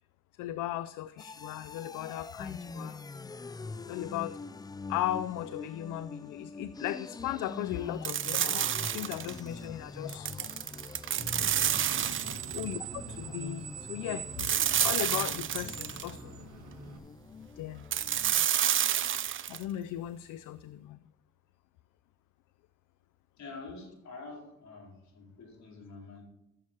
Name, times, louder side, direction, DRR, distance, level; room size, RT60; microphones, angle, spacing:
voice 1, 0.4-3.0 3.9-4.4 4.9-10.5 11.9-12.2 12.5-16.4 17.6-17.8 19.5-21.0, left 13 dB, 85° left, 14 dB, 0.5 m, -37 dB
sound 1, 1.2-18.5, left 3 dB, 15° left, 0.3 m, -44 dB
sound 2, 8.0-9.4 10.1-12.6 14.4-16.1 17.9-19.6, right 10 dB, 40° right, 0.5 m, -29 dB
Screech, 11.2-17.0, right 6 dB, 60° right, 2.1 m, -43 dB
voice 2, 23.4-26.2, left 3 dB, 65° left, -1 dB, 4.6 m, -47 dB
14.5 x 7.4 x 4.4 m, 0.89 s
cardioid pair, 90°, 30 cm